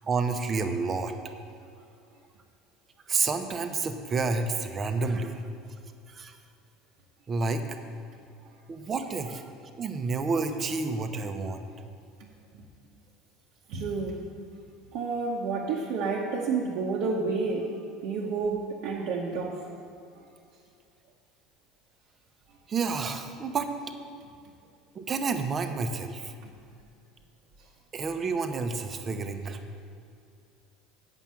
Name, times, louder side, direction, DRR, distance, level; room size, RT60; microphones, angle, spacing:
voice 1, 0.0-1.1 3.1-5.4 6.1-6.4 7.3-7.7 8.7-9.4 9.8-11.6 22.7-23.7 24.9-26.3 27.9-29.6, right 4 dB, 35° right, 7 dB, 0.9 m, -29 dB
voice 2, 13.7-14.2 14.9-17.8 18.0-19.7 26.4-26.5, right 4 dB, 65° right, -3 dB, 1.0 m, -30 dB
8.1 x 5.7 x 7.5 m, 2.4 s
hypercardioid pair, 80°, 0 cm